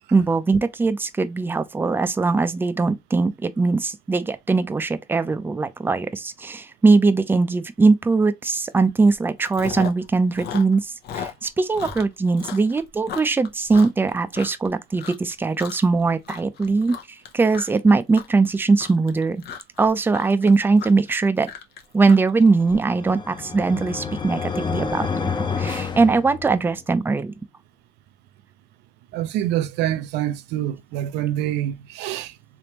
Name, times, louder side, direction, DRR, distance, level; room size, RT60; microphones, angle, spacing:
voice 1, 0.1-17.0 17.3-19.4 19.8-21.5 21.9-27.3, right 3 dB, 10° right, 0.4 m, -20 dB
Chewing mastication, 8.6-8.8 9.1-10.1 10.3-14.7 15.0-15.3 15.6-16.0 16.2-22.8, left 7 dB, 70° left, 0.8 m, -36 dB
sound 1, 22.5-26.8, left 5 dB, 25° left, 0.7 m, -29 dB
voice 2, 29.1-32.3, right 12 dB, 85° right, 0.4 m, -26 dB
3.5 x 3.0 x 2.9 m
cardioid pair, 110°, 17 cm